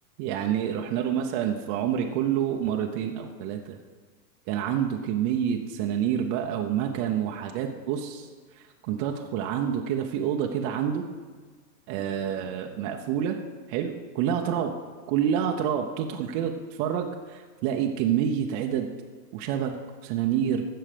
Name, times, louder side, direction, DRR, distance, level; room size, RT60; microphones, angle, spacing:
voice 1, 0.2-3.8 4.5-8.3 8.8-11.0 11.9-13.4 13.7-14.7 15.1-16.5 16.8-18.9 19.3-20.6, right 9 dB, 35° right, 2 dB, 0.7 m, -27 dB
15.5 x 5.6 x 5.0 m, 1.5 s
hypercardioid pair, 130°, 49 cm